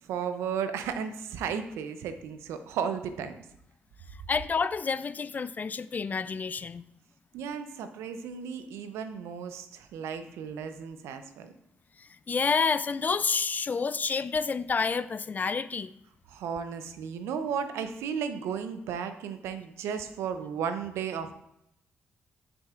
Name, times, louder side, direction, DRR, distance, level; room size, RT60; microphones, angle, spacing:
voice 1, 0.0-3.3 7.3-11.5 16.3-21.3, right 7 dB, 80° right, 9 dB, 0.6 m, -34 dB
voice 2, 4.3-6.8 12.3-15.9, left 5 dB, 40° left, 15 dB, 0.3 m, -29 dB
7.2 x 6.2 x 2.5 m, 0.78 s
supercardioid pair, 55°, 4 cm